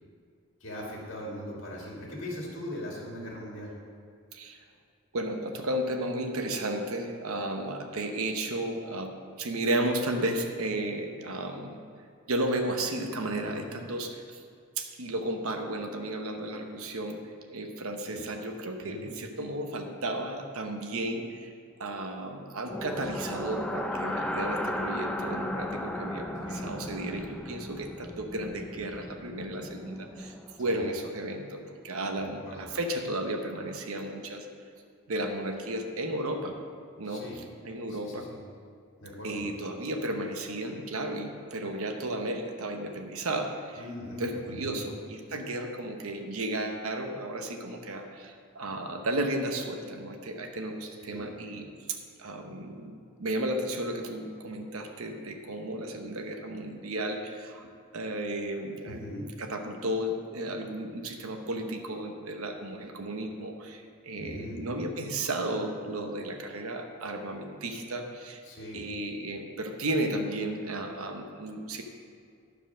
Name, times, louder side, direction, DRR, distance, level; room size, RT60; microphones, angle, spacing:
voice 1, 0.6-3.7 13.5-13.7 18.0-18.2 18.8-19.1 26.4-26.6 30.7-30.8 32.2-32.7 37.0-37.4 37.9-38.4 39.0-39.4 43.8-44.8 51.0-51.2 58.9-59.3 64.2-64.6 68.4-68.8, left 1 dB, 60° left, -3 dB, 2.2 m, -40 dB
voice 2, 5.1-11.8 12.3-14.4 14.8-17.2 17.5-21.5 21.8-34.5 35.1-36.5 37.0-38.3 39.2-43.9 44.2-59.1 59.4-68.4 68.7-71.8, right 1 dB, 80° right, 4 dB, 1.0 m, -34 dB
sound 1, 22.7-30.7, left 1 dB, 5° left, 0.3 m, -35 dB
11.0 x 4.9 x 6.3 m, 2.3 s
head